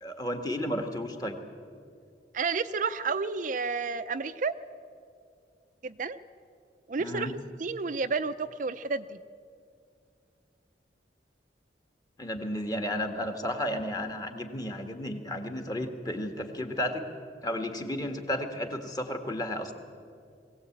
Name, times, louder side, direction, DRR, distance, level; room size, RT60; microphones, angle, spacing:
voice 1, 0.0-1.4 7.0-7.3 12.2-17.1 17.4-19.7, left 1 dB, 20° left, 5 dB, 1.6 m, -33 dB
voice 2, 2.3-4.5 5.8-6.2 6.9-7.3 7.6-9.2, right 4 dB, 45° right, 10 dB, 0.5 m, -31 dB
21.5 x 16.5 x 8.6 m, 2.3 s
head